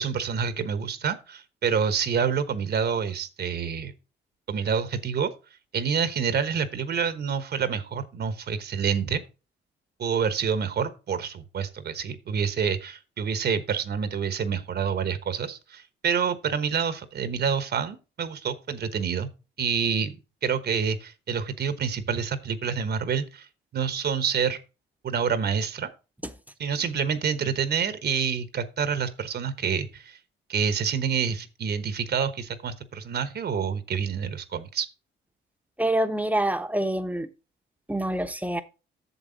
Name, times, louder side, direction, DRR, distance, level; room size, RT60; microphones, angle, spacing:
voice 1, 0.0-3.9 4.5-5.3 5.7-9.2 10.0-19.3 19.6-20.1 20.4-23.5 23.7-24.6 25.0-25.9 26.6-30.2 30.5-34.9, right 6 dB, 55° right, 1.1 m, -27 dB
voice 2, 35.8-37.3 37.9-38.6, right 1 dB, 10° right, 0.9 m, -26 dB
8.1 x 6.9 x 3.9 m
cardioid pair, 90°, 20 cm